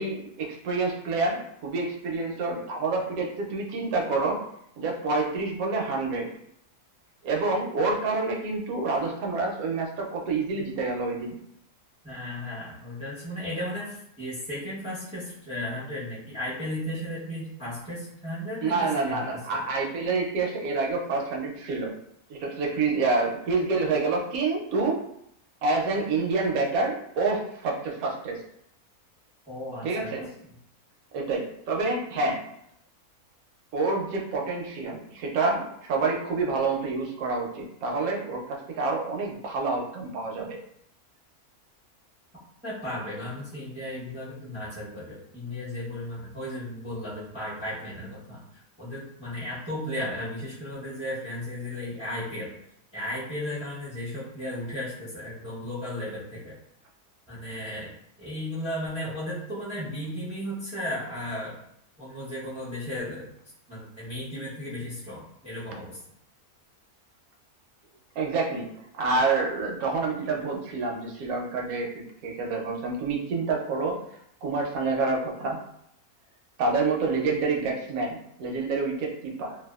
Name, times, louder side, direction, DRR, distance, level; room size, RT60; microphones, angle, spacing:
voice 1, 0.0-4.4 4.8-6.3 7.2-11.3 18.6-21.9 22.3-25.1 25.6-28.4 29.8-30.3 31.1-32.4 33.7-40.6 68.2-68.7 68.9-71.9 72.2-74.0 74.4-75.6 76.6-79.6, right 3 dB, 75° right, 0 dB, 1.0 m, -27 dB
voice 2, 12.0-19.7 29.5-30.1 42.6-52.5 52.9-56.5 57.3-61.6 62.0-63.3 63.7-66.0, left 1 dB, 10° right, -12 dB, 0.4 m, -35 dB
2.7 x 2.2 x 2.3 m, 0.74 s
omnidirectional pair, 1.6 m